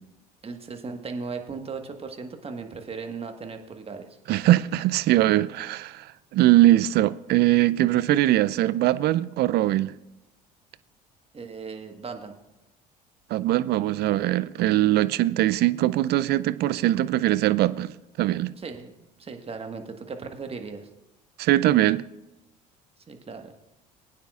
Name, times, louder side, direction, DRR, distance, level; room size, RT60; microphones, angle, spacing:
voice 1, 0.4-4.1 11.3-12.3 18.6-20.9 23.1-23.5, right 4 dB, 30° right, 1.4 m, -37 dB
voice 2, 4.3-6.1 6.3-9.9 13.3-17.9 18.2-18.5 21.4-22.0, right 15 dB, 55° right, 0.4 m, -21 dB
21.0 x 9.3 x 2.4 m
hypercardioid pair, 60°, 20 cm